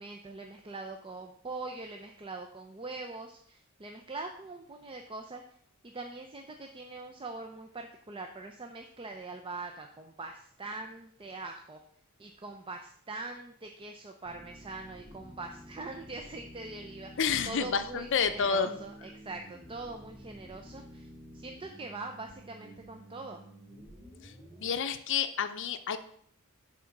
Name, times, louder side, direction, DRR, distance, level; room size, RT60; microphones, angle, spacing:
voice 1, 0.0-5.4 5.8-11.8 12.2-21.1 21.3-23.4, right 3 dB, 25° right, 4 dB, 0.5 m, -43 dB
sound 1, 14.2-24.7, equal, 5° left, 2.8 m, -51 dB
voice 2, 17.2-18.8 24.2-24.3 24.6-26.0, left 6 dB, 60° left, 10 dB, 0.6 m, -29 dB
8.3 x 3.7 x 5.9 m, 0.63 s
head